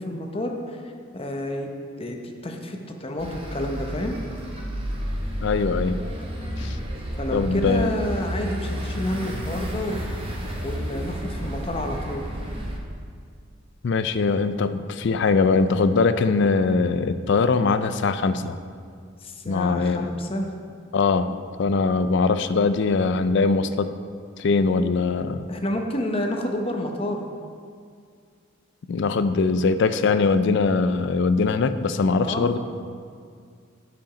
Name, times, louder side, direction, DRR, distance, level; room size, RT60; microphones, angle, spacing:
voice 1, 0.0-1.7 2.0-4.2 7.2-10.0 10.6-12.3 19.2-20.5 25.5-27.2 32.2-32.6, left 1 dB, 25° left, 3 dB, 0.8 m, -29 dB
sound 1, 3.2-12.8, equal, 25° right, 1.0 m, -31 dB
voice 2, 5.4-6.0 6.6-6.8 7.3-7.9 13.8-18.6 19.5-20.1 20.9-21.3 21.6-23.9 24.4-25.4 28.9-32.6, left 4 dB, 60° left, 11 dB, 0.4 m, -21 dB
10.5 x 5.1 x 5.1 m, 2.2 s
head